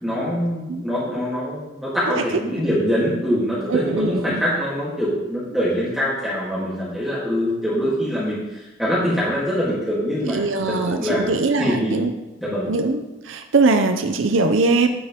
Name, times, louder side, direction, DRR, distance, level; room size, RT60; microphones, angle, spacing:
voice 1, 0.0-11.3 11.6-12.0 12.4-12.7, equal, ahead, -9 dB, 1.7 m, -24 dB
voice 2, 3.7-4.4 10.2-12.1 12.7-14.9, right 3 dB, 70° right, 6 dB, 0.6 m, -21 dB
9.4 x 7.9 x 2.9 m, 1.0 s
head